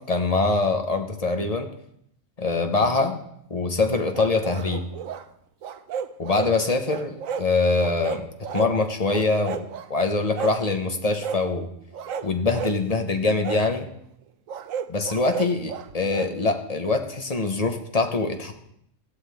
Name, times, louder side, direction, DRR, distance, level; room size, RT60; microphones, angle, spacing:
voice 1, 0.0-1.7 2.4-3.2 3.5-4.8 6.2-8.2 8.5-11.7 12.2-13.9 14.9-18.5, left 3 dB, 30° left, 5 dB, 1.0 m, -24 dB
sound 1, 4.1-5.2 5.6-6.5 6.9-7.5 7.8-8.7 9.1-9.9 10.3-10.6 11.2-11.4 11.9-12.8 13.4-13.6 14.5-16.3, right 7 dB, 80° right, 1.1 m, -33 dB
15.0 x 11.5 x 3.6 m, 0.73 s
omnidirectional pair, 1.4 m